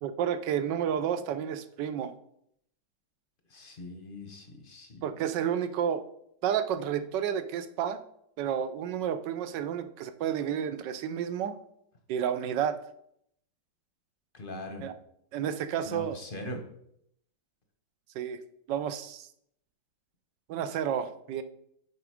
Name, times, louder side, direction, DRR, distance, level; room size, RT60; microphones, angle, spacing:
voice 1, 0.0-2.1 5.0-6.0 6.4-8.0 8.4-11.5 12.1-12.8 14.8-14.9 15.3-16.2 18.1-18.4 18.7-19.3 20.5-21.4, right 9 dB, 75° right, 11 dB, 1.2 m, -31 dB
voice 2, 3.5-5.0 14.3-14.8 15.8-16.6, left 1 dB, 40° left, 4 dB, 0.8 m, -41 dB
6.9 x 5.0 x 4.9 m, 0.72 s
omnidirectional pair, 2.1 m